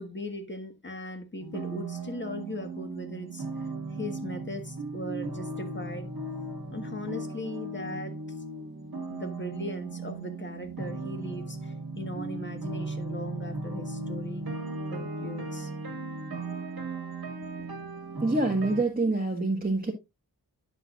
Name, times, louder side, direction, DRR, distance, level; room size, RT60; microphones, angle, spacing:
voice 1, 0.0-3.4 3.9-6.1 6.7-8.2 9.1-14.4 14.9-15.7 17.6-18.0, left 1 dB, 30° left, 1.6 m, -39 dB
sound 1, 1.4-18.8, right 2 dB, 70° right, 1.8 m, -37 dB
voice 2, 18.2-19.9, right 2 dB, 25° right, 1.5 m, -26 dB
9.9 x 7.0 x 2.4 m
wide cardioid pair, 90°, 37 cm